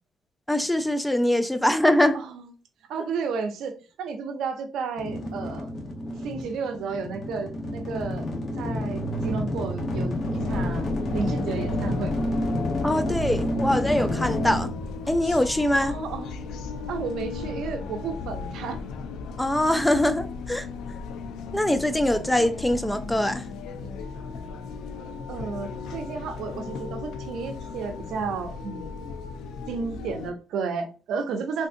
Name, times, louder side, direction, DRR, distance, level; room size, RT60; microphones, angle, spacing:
voice 1, 0.5-2.2 12.8-14.7 15.1-15.9 19.4-20.7 21.5-23.5, left 1 dB, 5° left, 0.3 m, -23 dB
voice 2, 2.9-5.7 6.2-8.3 8.6-12.1 15.8-16.5 16.9-18.8 22.1-22.5 25.3-29.0 29.7-31.7, right 5 dB, 80° right, 0.6 m, -32 dB
sound 1, 5.0-16.0, left 1 dB, 55° left, 0.9 m, -30 dB
sound 2, 10.4-30.3, left 4 dB, 85° left, 0.3 m, -36 dB
3.6 x 2.6 x 2.5 m
cardioid pair, 90°, 0 cm